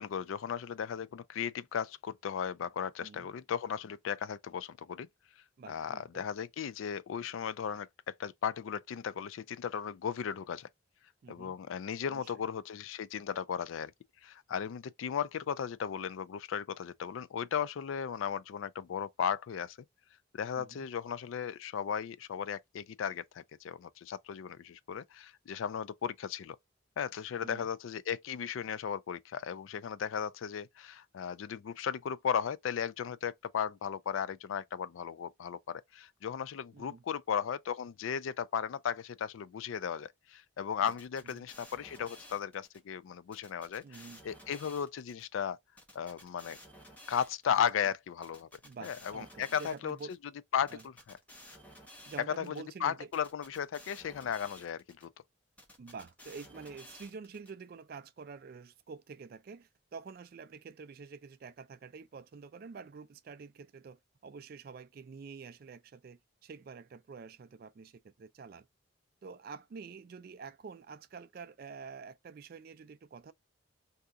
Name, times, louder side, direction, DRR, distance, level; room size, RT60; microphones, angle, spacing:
voice 1, 0.0-5.1 5.7-10.7 11.3-13.9 14.2-19.8 20.3-26.6 27.0-43.8 44.2-45.6 46.0-46.6 47.1-48.5 48.8-50.0 50.5-51.2 52.4-52.6 52.8-55.1, left 8 dB, 75° left, 0.3 m, -36 dB
voice 2, 3.0-3.3 5.6-6.2 11.2-11.6 12.1-12.3 20.6-20.9 27.4-27.7 36.7-37.0 40.8-40.9 41.3-41.4 43.8-44.2 48.6-50.1 50.7-50.8 52.1-53.1 55.8-68.7 69.2-73.3, right 5 dB, 45° right, 0.3 m, -48 dB
sound 1, 40.9-42.8 43.3-45.2 45.8-47.7 48.2-50.2 50.7-52.6 53.1-55.1 55.6-57.5, left 1 dB, 5° left, 0.7 m, -54 dB
2.7 x 2.3 x 3.5 m
head